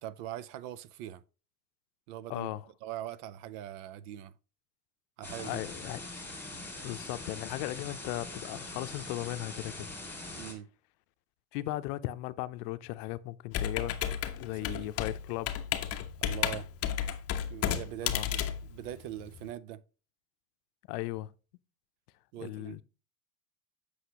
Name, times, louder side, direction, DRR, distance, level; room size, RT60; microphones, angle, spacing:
voice 1, 0.0-1.2 2.1-2.5 2.8-4.3 5.2-5.6 10.3-10.7 14.5-14.9 16.2-16.7 17.5-19.8 22.3-22.8, right 12 dB, 65° right, 0.7 m, -42 dB
voice 2, 2.3-2.6 5.4-6.0 6.8-9.9 11.5-15.5 18.0-18.3 20.9-21.3 22.4-22.8, left 16 dB, 70° left, 0.6 m, -37 dB
sound 1, 5.2-10.5, left 2 dB, 5° left, 2.0 m, -43 dB
Computer keyboard, 13.5-19.5, left 9 dB, 30° left, 0.6 m, -33 dB
7.9 x 6.3 x 2.8 m
supercardioid pair, 125°, 49 cm